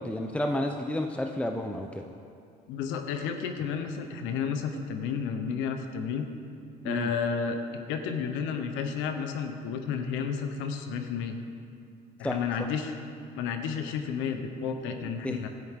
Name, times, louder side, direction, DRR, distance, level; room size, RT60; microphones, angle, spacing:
voice 1, 0.0-2.0 6.8-7.1 12.2-12.7 15.0-15.5, left 1 dB, 5° left, 4 dB, 0.8 m, -31 dB
voice 2, 2.7-6.3 6.8-11.4 12.2-13.0 13.4-15.5, left 6 dB, 80° left, 6 dB, 1.1 m, -31 dB
17.0 x 11.0 x 3.8 m, 2.5 s
supercardioid pair, 75°, 20 cm